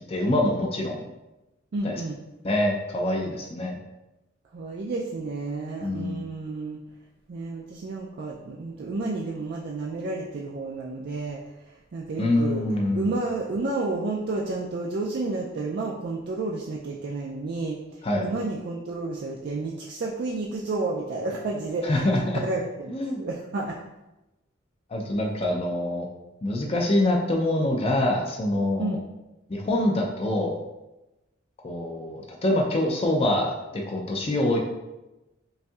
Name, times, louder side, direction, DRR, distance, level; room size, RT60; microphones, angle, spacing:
voice 1, 0.1-1.0 1.8-2.0 2.4-3.8 5.8-6.2 12.2-13.1 18.0-18.3 21.8-22.4 22.9-23.2 24.9-26.1 26.4-29.0 29.5-30.6 31.6-34.6, left 1 dB, 30° left, 0 dB, 0.5 m, -25 dB
voice 2, 1.7-2.2 4.5-6.8 7.3-11.4 11.9-12.6 12.9-23.8 28.8-29.0, right 3 dB, 55° right, -2 dB, 0.4 m, -31 dB
5.4 x 2.6 x 2.3 m, 0.99 s
head